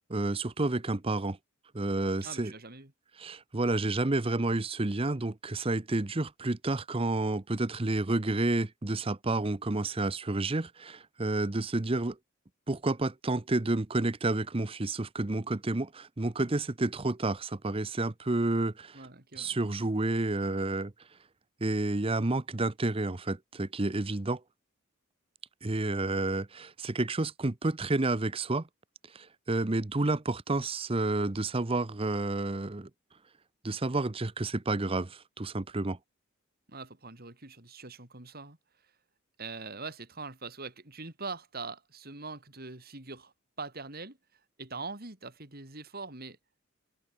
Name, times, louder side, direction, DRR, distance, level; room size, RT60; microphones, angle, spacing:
voice 1, 0.1-1.4 1.7-2.5 3.2-12.2 12.7-19.0 19.3-20.9 21.6-24.4 25.6-28.7 29.1-32.9 33.6-36.0, right 2 dB, 25° right, 0.8 m, -30 dB
voice 2, 2.2-2.9 18.9-19.5 36.7-38.6 39.4-44.2 44.6-46.4, right 3 dB, 45° right, 3.8 m, -42 dB
head